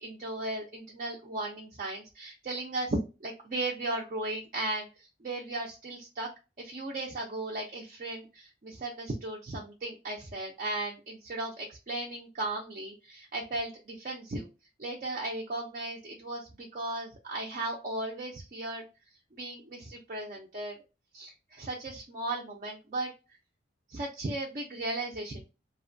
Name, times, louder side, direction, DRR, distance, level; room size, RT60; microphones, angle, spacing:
voice 1, 0.0-4.9 5.2-6.3 6.6-14.5 14.8-18.8 19.3-20.8 21.1-23.1 23.9-25.4, right 2 dB, 40° right, -1 dB, 0.5 m, -36 dB
2.6 x 2.1 x 2.6 m, 0.29 s
head